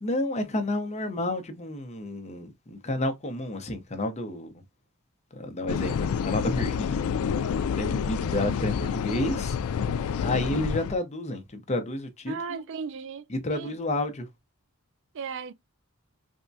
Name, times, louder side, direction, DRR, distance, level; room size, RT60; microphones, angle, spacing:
voice 1, 0.0-4.6 5.3-7.0 7.7-9.6 10.2-12.6 13.3-14.3, left 1 dB, 30° left, 0.7 m, -30 dB
sound 1, 5.7-11.0, left 7 dB, 70° left, 0.3 m, -28 dB
voice 2, 12.3-13.7 15.1-15.5, right 5 dB, 55° right, 0.3 m, -36 dB
3.5 x 2.1 x 2.6 m
head